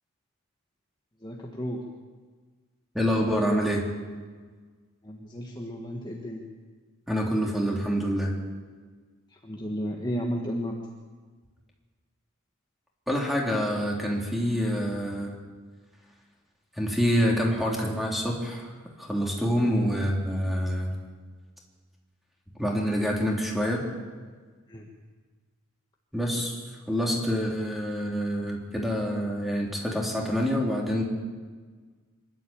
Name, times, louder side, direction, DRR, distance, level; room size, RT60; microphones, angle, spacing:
voice 1, 1.2-1.8 5.0-6.4 9.4-10.8 19.6-19.7 24.7-24.9, equal, 20° left, 0 dB, 1.6 m, -33 dB
voice 2, 2.9-3.9 7.1-8.3 13.1-15.4 16.8-20.9 22.6-23.8 26.1-26.6 26.9-31.0, equal, ahead, -1 dB, 3.6 m, -26 dB
25.5 x 12.0 x 8.9 m, 1.5 s
head